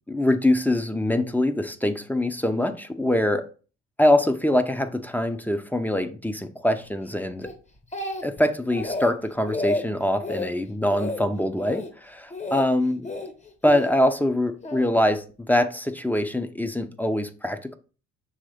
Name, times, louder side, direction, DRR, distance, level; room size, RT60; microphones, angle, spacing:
voice 1, 0.1-3.4 4.0-7.5 8.2-13.0 13.6-17.8, left 1 dB, 5° left, 0.8 m, -24 dB
Speech, 7.4-8.4 8.7-9.1 9.5-9.8 10.2-10.5 10.9-11.2 11.6-11.9 12.3-12.7 13.0-13.9 14.6-14.9, left 2 dB, 25° left, 1.2 m, -31 dB
6.4 x 3.4 x 5.1 m
cardioid pair, 90°, 30 cm